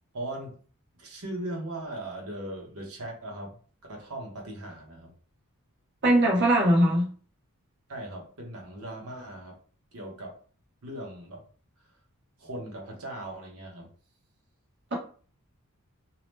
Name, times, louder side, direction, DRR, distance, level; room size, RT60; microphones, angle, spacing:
voice 1, 0.1-0.6 1.0-3.6 3.9-5.1 7.9-9.6 9.9-10.4 10.8-11.4 12.4-13.9, right 1 dB, 75° right, 1.0 m, -38 dB
voice 2, 6.0-7.1, right 1 dB, 55° right, 1.0 m, -20 dB
2.8 x 2.1 x 3.2 m
head